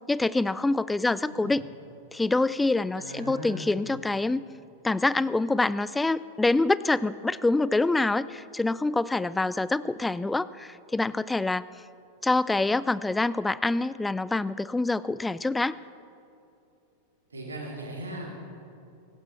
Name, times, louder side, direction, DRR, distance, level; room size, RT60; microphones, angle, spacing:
voice 1, 0.1-1.6 2.1-4.4 4.8-11.7 12.2-15.7, left 2 dB, 10° left, 17 dB, 0.3 m, -26 dB
voice 2, 2.9-3.8 17.3-18.3, right 1 dB, 75° right, -2 dB, 3.2 m, -38 dB
18.0 x 16.0 x 4.5 m, 2.7 s
figure-of-eight pair, 90°, 0 cm